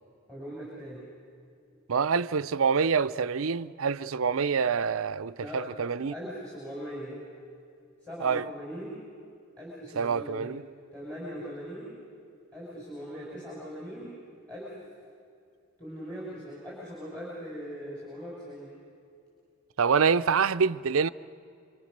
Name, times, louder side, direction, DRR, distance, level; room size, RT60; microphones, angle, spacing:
voice 1, 0.3-1.1 5.4-5.6 6.1-7.2 8.0-9.0 9.6-10.5 10.9-11.9 12.5-14.1 14.5-14.8 15.8-18.7, equal, 5° left, 6.3 m, -40 dB
voice 2, 1.9-6.1 8.2-8.4 10.0-10.6 19.8-21.1, right 6 dB, 90° right, 0.6 m, -26 dB
28.0 x 25.0 x 6.7 m
head